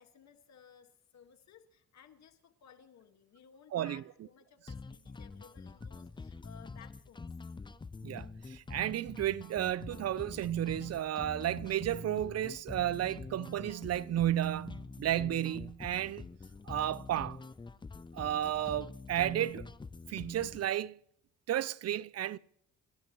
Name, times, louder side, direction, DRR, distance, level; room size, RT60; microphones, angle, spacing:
voice 1, 0.0-7.3, left 7 dB, 65° left, 1.8 m, -59 dB
voice 2, 3.7-4.0 8.0-16.3 16.7-17.4 18.1-19.7 20.1-21.0 21.5-22.4, right 12 dB, 55° right, 0.6 m, -33 dB
sound 1, 4.7-20.7, left 4 dB, 15° left, 0.5 m, -46 dB
30.0 x 13.5 x 3.1 m
cardioid pair, 90°, 30 cm